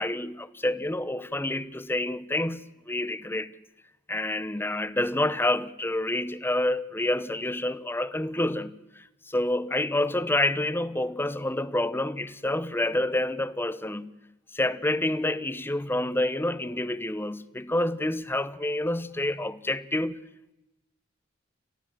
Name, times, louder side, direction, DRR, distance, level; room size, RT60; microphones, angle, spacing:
voice 1, 0.0-3.5 4.1-8.8 9.3-14.1 14.5-20.2, left 1 dB, 10° left, 0.9 m, -28 dB
29.0 x 14.5 x 7.5 m
head